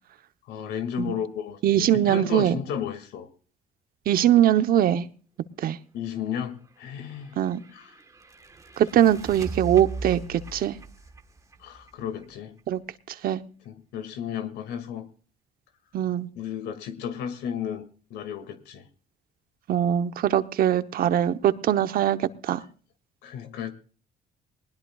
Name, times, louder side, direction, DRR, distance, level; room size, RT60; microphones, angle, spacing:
voice 1, 0.5-3.3 5.9-7.4 7.7-7.9 11.6-12.6 13.7-15.1 16.3-18.9 21.0-21.2 23.2-23.7, left 8 dB, 85° left, 10 dB, 2.3 m, -33 dB
voice 2, 1.6-2.6 4.1-5.1 5.6-5.8 7.4-7.6 8.8-10.8 12.7-12.8 13.2-13.4 15.9-16.3 19.7-22.6, right 11 dB, 60° right, 11 dB, 0.9 m, -22 dB
sound 1, 6.9-12.6, right 2 dB, 20° right, 1.4 m, -40 dB
20.0 x 19.5 x 2.4 m, 0.41 s
cardioid pair, 110°, 17 cm